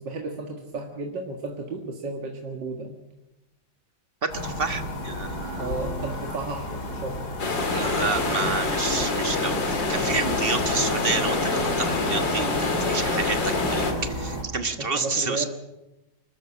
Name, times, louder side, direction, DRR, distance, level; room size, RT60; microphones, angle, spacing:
voice 1, 0.0-3.0 5.6-7.2 10.7-10.9 14.8-15.5, right 3 dB, 75° right, 2 dB, 2.5 m, -33 dB
voice 2, 4.2-5.7 7.7-15.4, right 4 dB, 35° right, 8 dB, 1.5 m, -29 dB
sound 1, 4.3-14.4, left 1 dB, 60° left, 3.7 m, -33 dB
sound 2, 7.4-13.9, left 3 dB, 85° left, 3.2 m, -26 dB
25.5 x 13.0 x 8.5 m, 0.97 s
omnidirectional pair, 1.9 m